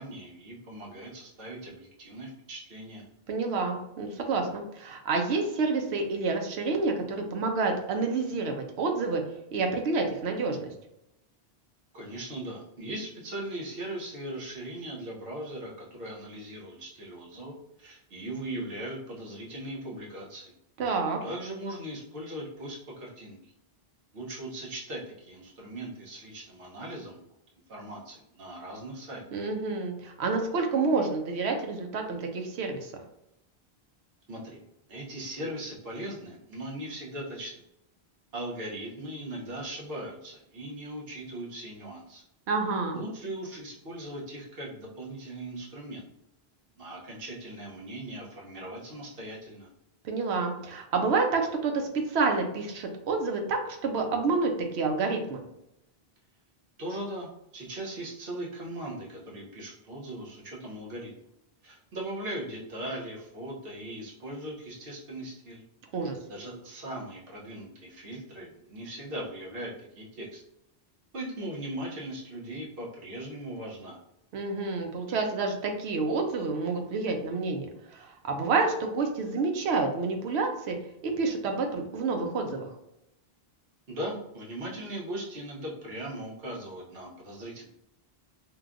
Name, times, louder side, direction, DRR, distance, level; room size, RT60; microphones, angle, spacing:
voice 1, 0.0-3.0 11.9-20.5 21.2-23.4 24.1-27.2 27.7-29.2 34.3-34.6 34.9-37.6 38.3-42.2 42.9-46.1 46.8-49.7 56.8-61.1 61.6-65.6 66.3-70.4 71.1-74.0 83.9-87.6, right 1 dB, 65° right, -3 dB, 1.0 m, -39 dB
voice 2, 3.3-9.2 9.5-10.7 20.8-21.2 29.3-32.9 42.5-43.0 50.0-55.4 65.9-66.2 74.3-80.8 81.0-82.7, right 4 dB, 85° right, 4 dB, 0.8 m, -28 dB
3.2 x 2.2 x 2.4 m, 0.83 s
omnidirectional pair, 1.1 m